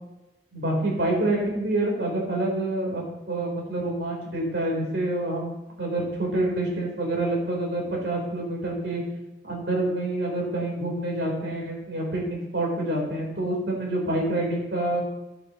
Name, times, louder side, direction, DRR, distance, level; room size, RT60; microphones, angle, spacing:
voice 1, 0.5-9.0 9.4-15.0, right 1 dB, 80° right, -2 dB, 4.0 m, -27 dB
12.0 x 9.1 x 3.1 m, 0.99 s
head